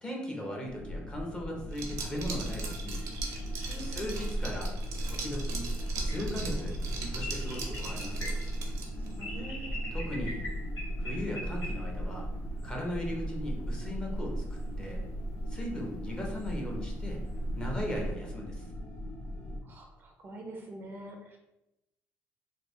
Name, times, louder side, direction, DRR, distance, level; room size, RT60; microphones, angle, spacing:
voice 1, 0.0-3.0 3.8-4.7 5.1-8.4 9.9-10.4 11.0-12.3 12.6-15.0 15.5-17.2 17.6-18.7, left 1 dB, 15° left, -1 dB, 0.7 m, -38 dB
sound 1, 0.7-19.6, equal, 45° left, 1.2 m, -41 dB
Liquid, 1.7-9.1, right 4 dB, 75° right, 0.7 m, -41 dB
sound 2, 1.8-18.1, right 1 dB, 80° left, 1.0 m, -37 dB
voice 2, 3.7-4.2 9.0-9.8 19.6-21.4, right 2 dB, 40° right, 2 dB, 0.5 m, -45 dB
3.3 x 2.2 x 3.1 m, 0.90 s
cardioid pair, 130°, 5 cm